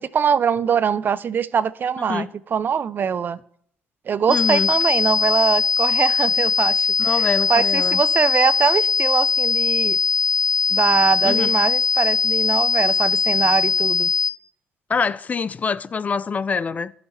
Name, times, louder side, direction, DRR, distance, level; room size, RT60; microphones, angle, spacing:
voice 1, 0.0-3.4 4.1-7.2 7.5-10.0 10.7-14.1, right 7 dB, 50° right, 0.4 m, -22 dB
voice 2, 2.0-2.3 4.3-4.7 7.0-8.0 11.2-11.5 14.9-16.9, left 5 dB, 35° left, 0.3 m, -25 dB
sound 1, 4.3-14.3, left 5 dB, 10° right, 1.1 m, -20 dB
11.0 x 5.7 x 4.1 m
supercardioid pair, 70°, 4 cm